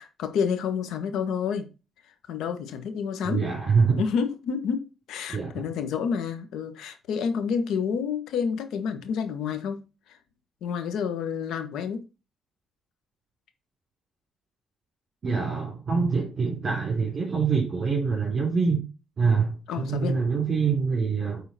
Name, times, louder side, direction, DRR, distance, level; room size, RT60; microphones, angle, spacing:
voice 1, 0.0-1.7 2.3-3.4 4.0-9.8 10.6-12.0 19.7-20.2, left 6 dB, 80° left, 1.4 m, -29 dB
voice 2, 3.2-4.0 5.3-5.6 15.2-18.8 19.2-21.4, right 5 dB, 40° right, 3.2 m, -25 dB
9.4 x 3.9 x 4.3 m
cardioid pair, 90°, 0 cm